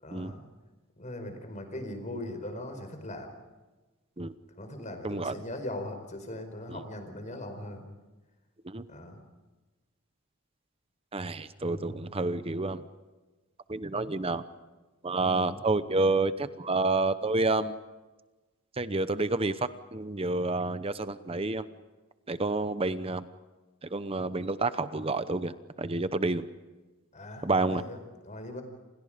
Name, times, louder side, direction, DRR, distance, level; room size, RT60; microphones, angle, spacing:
voice 1, 0.0-0.4 1.0-3.3 4.5-7.8 8.9-9.2 11.6-12.0 15.2-15.6 27.1-28.0 28.2-28.6, left 1 dB, 35° left, 7 dB, 4.8 m, -40 dB
voice 2, 5.0-5.3 6.7-6.8 8.6-8.9 11.1-12.9 13.7-14.4 15.0-17.8 18.8-21.7 22.3-23.3 23.8-26.5 27.4-27.8, right 3 dB, 25° right, 12 dB, 0.9 m, -29 dB
29.0 x 28.0 x 5.1 m, 1.2 s
head